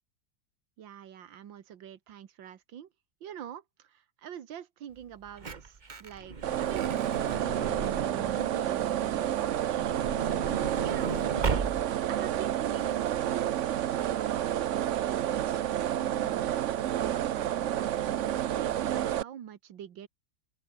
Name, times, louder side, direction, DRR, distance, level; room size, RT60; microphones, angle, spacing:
voice 1, 0.8-2.9 3.2-9.8 10.8-11.7 12.1-13.5 13.9-16.5 16.9-20.1, right 9 dB, 85° right, 2.1 m, -44 dB
Truck / Door, 5.0-8.5 9.6-12.1 12.8-12.9 13.1-13.3, right 4 dB, 30° right, 1.2 m, -35 dB
sound 1, 6.4-19.2, right 11 dB, 65° right, 0.7 m, -30 dB
open air
omnidirectional pair, 2.0 m